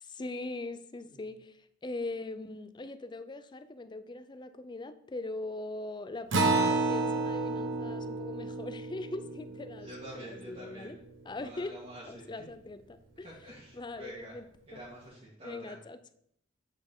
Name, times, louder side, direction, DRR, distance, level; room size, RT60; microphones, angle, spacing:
voice 1, 0.0-11.0 11.3-11.7 12.0-13.3 13.7-14.4 14.7-14.8 15.4-16.1, left 2 dB, 25° left, 11 dB, 0.5 m, -41 dB
Acoustic guitar, 6.3-11.2, right 3 dB, 75° right, 1.1 m, -31 dB
voice 2, 9.8-10.9 11.3-12.4 13.2-14.4 14.7-15.8, equal, 30° right, -6 dB, 1.6 m, -47 dB
8.2 x 6.1 x 3.7 m, 0.72 s
head